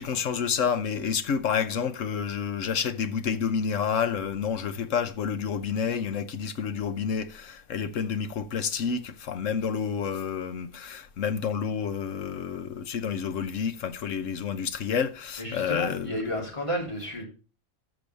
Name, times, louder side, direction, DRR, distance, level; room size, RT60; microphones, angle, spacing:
voice 1, 0.0-16.2, left 6 dB, 70° left, 1.2 m, -29 dB
voice 2, 15.4-17.2, equal, 20° left, 3.7 m, -32 dB
12.5 x 6.8 x 3.3 m
omnidirectional pair, 1.4 m